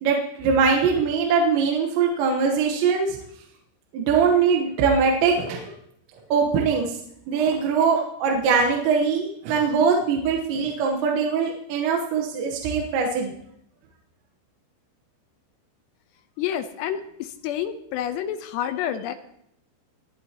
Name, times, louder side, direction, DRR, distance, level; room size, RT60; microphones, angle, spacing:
voice 1, 0.0-3.2 3.9-5.7 6.3-6.9 7.3-13.3, right 5 dB, 75° right, 1 dB, 3.4 m, -22 dB
voice 2, 16.4-19.1, left 10 dB, 80° left, 9 dB, 2.7 m, -29 dB
22.0 x 14.0 x 2.9 m, 0.73 s
omnidirectional pair, 5.4 m